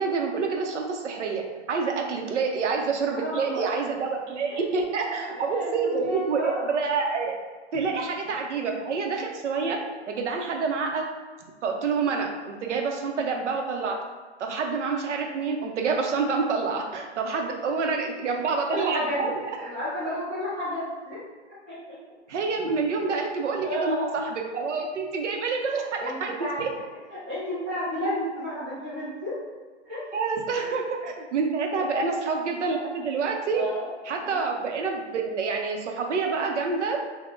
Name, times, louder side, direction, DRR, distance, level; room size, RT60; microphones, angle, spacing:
voice 1, 0.0-7.4 7.7-9.8 10.1-11.0 11.6-14.0 14.4-19.3 22.3-26.3 26.6-26.7 30.1-33.6 34.1-37.0, right 4 dB, 80° right, 2 dB, 0.7 m, -27 dB
voice 2, 3.0-3.6 5.3-5.7 6.0-6.7 17.4-17.5 18.6-21.2 21.7-21.8 23.6-24.1 26.0-26.8 27.1-29.3 29.8-30.0 30.5-30.7 31.8-32.2 32.6-32.8 33.5-33.9 34.2-34.6, equal, 10° right, -15 dB, 0.4 m, -32 dB
3.5 x 2.1 x 2.4 m, 1.4 s
hypercardioid pair, 165°, 35 cm